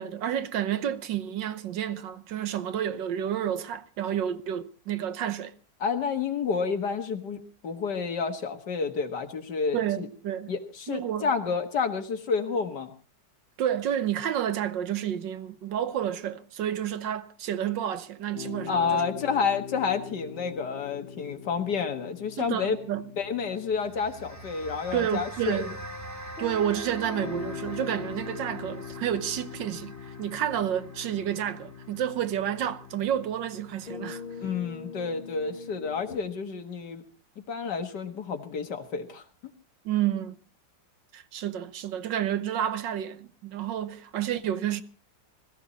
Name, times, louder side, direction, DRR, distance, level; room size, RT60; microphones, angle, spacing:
voice 1, 0.0-5.6 9.7-10.5 10.9-11.3 13.6-19.0 22.4-23.1 24.9-25.8 26.4-34.2 39.8-40.4 41.1-44.8, right 10 dB, 85° right, 1.6 m, -30 dB
voice 2, 5.8-10.1 10.5-12.9 18.7-22.8 23.2-25.7 34.4-37.0 37.5-39.2, left 5 dB, 70° left, 2.1 m, -30 dB
sound 1, 18.3-36.2, left 6 dB, 40° left, 1.0 m, -42 dB
sound 2, 23.7-34.3, right 2 dB, 10° right, 1.5 m, -45 dB
21.0 x 14.5 x 4.1 m
omnidirectional pair, 1.9 m